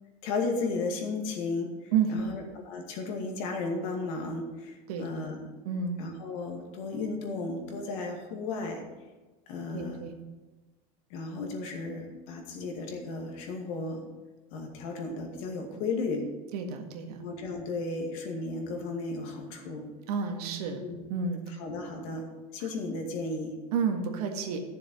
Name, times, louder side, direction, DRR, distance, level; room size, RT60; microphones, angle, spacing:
voice 1, 0.2-5.5 6.0-8.8 9.5-10.0 11.1-14.0 14.5-16.3 17.2-19.9 20.8-21.0 21.6-22.3 22.5-23.6, left 3 dB, 60° left, 2 dB, 2.2 m, -34 dB
voice 2, 1.9-2.3 4.9-5.1 5.7-6.0 9.7-10.1 16.5-17.2 20.1-21.6 23.7-24.6, right 6 dB, 85° right, 4 dB, 1.7 m, -30 dB
12.5 x 7.1 x 5.4 m, 1.2 s
supercardioid pair, 165°, 19 cm